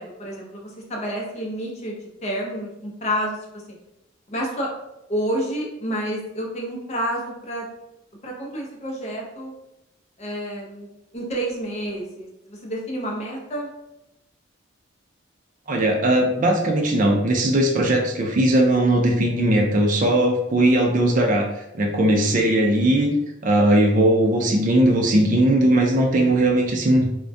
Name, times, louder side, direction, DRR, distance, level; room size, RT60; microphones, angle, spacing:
voice 1, 0.0-3.4 4.3-4.7 5.1-7.6 8.2-9.5 10.2-10.9 11.1-13.7, equal, 35° left, -1 dB, 0.6 m, -29 dB
voice 2, 15.7-21.5 21.7-23.1 23.4-27.1, right 1 dB, 45° right, 2 dB, 0.4 m, -19 dB
2.3 x 2.1 x 2.5 m, 0.88 s
head